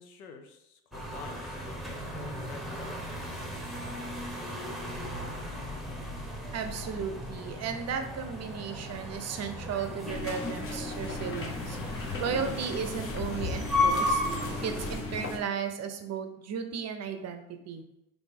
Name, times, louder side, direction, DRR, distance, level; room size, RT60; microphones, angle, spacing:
voice 1, 0.0-3.7, left 5 dB, 85° left, 6 dB, 0.6 m, -49 dB
sound 1, 0.9-15.0, left 1 dB, ahead, 0.9 m, -35 dB
voice 2, 6.5-14.2 14.6-17.8, right 6 dB, 40° right, 7 dB, 0.6 m, -35 dB
sound 2, 10.1-15.4, left 3 dB, 30° left, 0.8 m, -36 dB
4.1 x 3.1 x 3.5 m, 0.86 s
hypercardioid pair, 65°, 43 cm